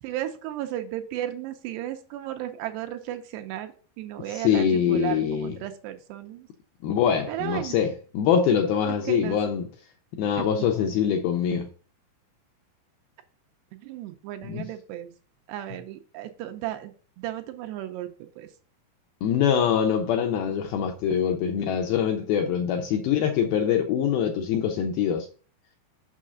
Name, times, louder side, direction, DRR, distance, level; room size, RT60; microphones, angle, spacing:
voice 1, 0.0-6.5 7.3-7.8 8.8-9.4 10.4-10.5 13.7-15.1 15.5-18.5, right 13 dB, 80° right, 2.6 m, -34 dB
voice 2, 4.3-5.5 6.8-9.7 10.1-11.7 14.4-14.7 19.2-25.3, left 8 dB, 90° left, 2.2 m, -24 dB
6.6 x 6.2 x 3.7 m
omnidirectional pair, 5.1 m